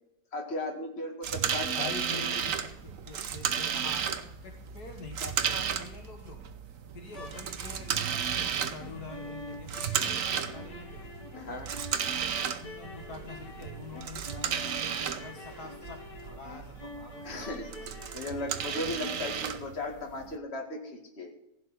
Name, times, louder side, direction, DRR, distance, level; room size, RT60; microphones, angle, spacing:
voice 1, 0.3-2.2 11.3-11.7 17.2-21.3, left 2 dB, 35° left, 2 dB, 2.4 m, -37 dB
sound 1, 1.2-20.4, right 8 dB, 55° right, 1.2 m, -34 dB
voice 2, 1.7-6.4 6.9-11.1 12.6-18.3, left 4 dB, 65° left, 3 dB, 2.1 m, -46 dB
sound 2, 7.0-19.4, left 2 dB, 85° left, 3.0 m, -46 dB
16.0 x 5.6 x 9.5 m, 0.81 s
omnidirectional pair, 1.8 m